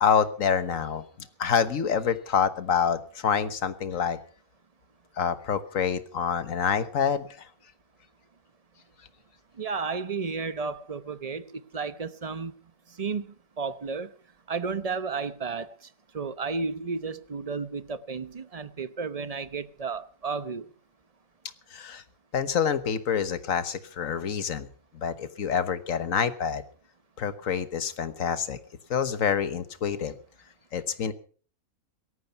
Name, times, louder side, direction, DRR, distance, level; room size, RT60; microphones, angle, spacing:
voice 1, 0.0-1.0 1.4-4.2 5.2-7.5 21.7-22.0 22.3-24.7 25.0-26.6 27.2-28.6 28.9-30.1 30.7-31.1, left 7 dB, 65° left, 1.6 m, -27 dB
voice 2, 9.6-12.5 13.0-14.1 14.5-15.7 16.1-20.7, right 4 dB, 30° right, 0.8 m, -32 dB
17.5 x 13.5 x 5.8 m
omnidirectional pair, 1.5 m